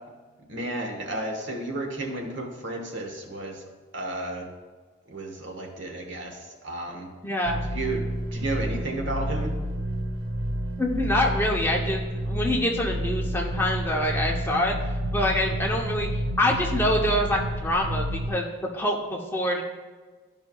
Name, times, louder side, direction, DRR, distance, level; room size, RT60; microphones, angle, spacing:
voice 1, 0.5-3.6 3.9-4.5 5.1-7.1 7.7-9.5, right 2 dB, 65° right, 2 dB, 1.1 m, -33 dB
voice 2, 7.2-7.6 10.8-12.0 12.3-14.8 15.1-19.6, left 1 dB, 10° left, -1 dB, 0.7 m, -25 dB
sound 1, 7.4-18.3, equal, 90° right, 0.6 m, -30 dB
12.0 x 5.3 x 2.3 m, 1.4 s
head